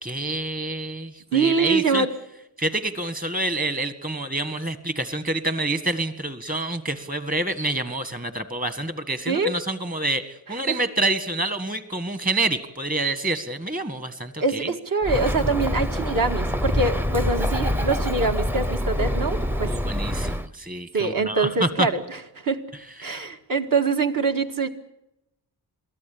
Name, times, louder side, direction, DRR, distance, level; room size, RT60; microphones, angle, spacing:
voice 1, 0.0-2.1 2.6-14.7 19.6-21.9 23.0-23.2, right 2 dB, 20° right, 11 dB, 1.7 m, -27 dB
voice 2, 1.3-2.1 9.3-9.5 10.7-10.8 14.4-19.7 20.9-22.6 23.0-24.7, right 4 dB, 50° right, 5 dB, 1.9 m, -24 dB
Bird, 15.0-20.5, equal, 5° right, 0.7 m, -25 dB
23.0 x 15.5 x 8.7 m, 0.87 s
wide cardioid pair, 125°, 41 cm